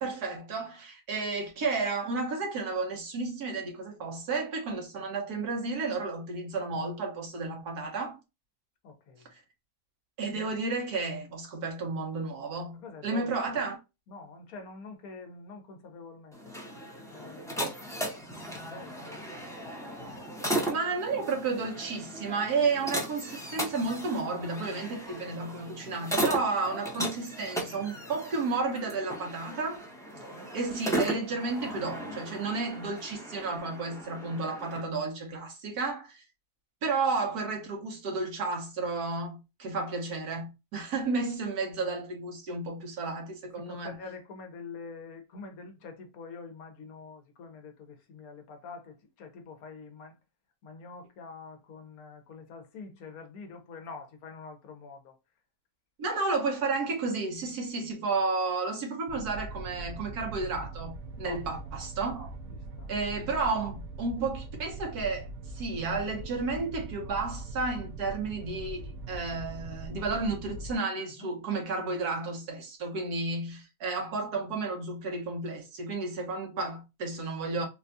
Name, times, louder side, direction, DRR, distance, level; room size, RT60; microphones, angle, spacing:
voice 1, 0.0-8.2 9.3-9.4 10.2-13.8 20.7-29.8 30.5-36.2 36.8-43.9 56.0-62.3 62.9-77.6, right 3 dB, 90° right, 1.7 m, -32 dB
voice 2, 8.8-9.3 12.8-13.3 14.1-16.5 17.1-18.1 18.4-19.3 30.1-30.5 43.6-50.2 50.6-55.1 61.2-61.7 62.5-62.9 71.0-71.3, left 4 dB, 75° left, 1.3 m, -46 dB
sound 1, 16.3-34.8, right 1 dB, 5° left, 0.6 m, -36 dB
sound 2, 59.1-70.8, right 3 dB, 70° right, 1.0 m, -41 dB
4.0 x 2.3 x 2.6 m
omnidirectional pair, 1.6 m